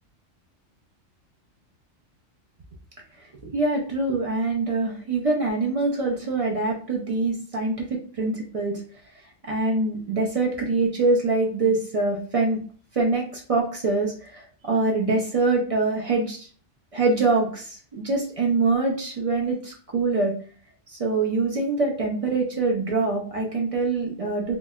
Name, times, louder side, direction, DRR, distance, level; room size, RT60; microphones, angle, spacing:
voice 1, 3.4-7.7 8.2-8.8 9.5-12.6 12.9-16.5 16.9-20.3 20.9-24.6, right 3 dB, 60° right, -1 dB, 0.3 m, -24 dB
3.7 x 2.1 x 2.3 m, 0.42 s
omnidirectional pair, 1.3 m